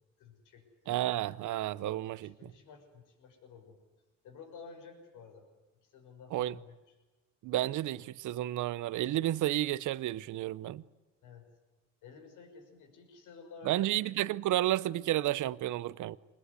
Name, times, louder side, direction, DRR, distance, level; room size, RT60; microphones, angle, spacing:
voice 1, 0.2-1.0 2.2-3.8 4.2-5.5 5.8-7.0 11.2-11.5 12.0-13.9, left 5 dB, 85° left, 6.1 m, -52 dB
voice 2, 0.9-2.5 6.3-6.5 7.4-10.8 13.7-16.2, right 14 dB, 80° right, 0.8 m, -31 dB
25.5 x 21.0 x 9.7 m
cardioid pair, 90°, 30 cm